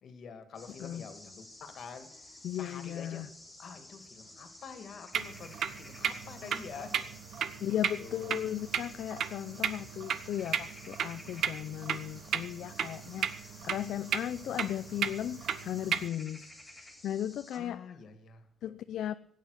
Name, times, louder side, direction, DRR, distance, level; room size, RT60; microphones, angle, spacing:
voice 1, 0.0-3.2 3.6-7.1 7.6-7.7 8.0-8.4 17.5-18.5, left 6 dB, 50° left, 9 dB, 2.3 m, -47 dB
sound 1, 0.5-17.6, left 1 dB, 5° left, 3.4 m, -53 dB
voice 2, 2.4-3.3 7.6-18.0 18.6-19.1, left 11 dB, 65° left, 11 dB, 0.6 m, -36 dB
sound 2, 5.1-16.1, right 8 dB, 60° right, 1.1 m, -35 dB
17.5 x 9.4 x 6.6 m, 0.71 s
cardioid pair, 155°, 0 cm